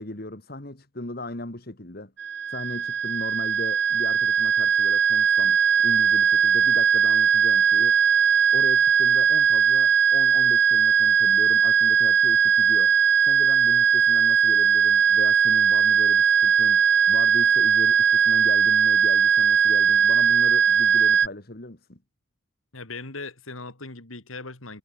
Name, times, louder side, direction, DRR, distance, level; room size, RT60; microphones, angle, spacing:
voice 1, 0.0-2.1 2.5-5.6 5.8-8.0 8.5-12.9 13.2-22.0, left 1 dB, 45° left, 2.0 m, -37 dB
sound 1, 2.2-21.3, right 7 dB, 55° right, 1.1 m, -19 dB
voice 2, 22.7-24.8, left 3 dB, 85° left, 3.4 m, -38 dB
head